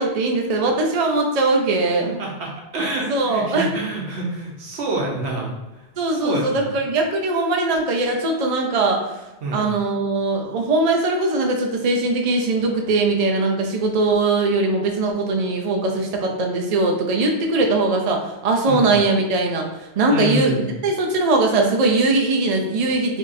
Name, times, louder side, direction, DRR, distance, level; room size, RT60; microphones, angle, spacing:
voice 1, 0.0-2.0 3.1-3.7 6.0-9.1 9.5-23.2, right 2 dB, 50° right, 2 dB, 0.5 m, -20 dB
voice 2, 2.0-6.7 9.4-9.7 18.7-18.9 20.1-20.7, right 2 dB, 80° right, -1 dB, 1.1 m, -27 dB
4.2 x 2.8 x 2.6 m, 1.0 s
omnidirectional pair, 1.1 m